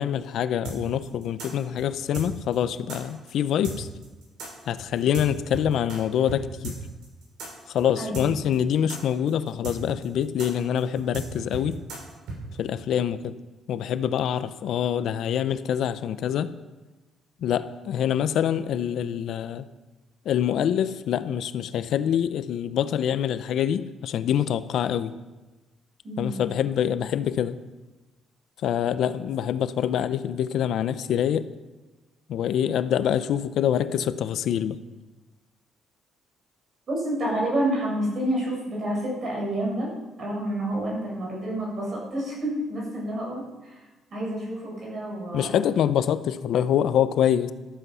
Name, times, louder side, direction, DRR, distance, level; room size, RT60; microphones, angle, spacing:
voice 1, 0.0-3.9 4.7-6.8 7.7-11.8 12.6-13.3 13.7-16.5 17.4-19.7 20.3-25.1 26.2-27.6 28.6-31.5 32.3-34.8 45.3-47.5, left 9 dB, 70° left, 0.7 m, -25 dB
sound 1, 0.6-6.0 6.3-6.4 6.6-12.4, right 2 dB, 85° right, 6.2 m, -36 dB
voice 2, 8.0-8.3 26.0-26.4 36.9-39.9 40.2-43.4 44.1-45.5, right 1 dB, 45° right, 6.5 m, -28 dB
13.5 x 13.5 x 5.7 m
cardioid pair, 135°, 0 cm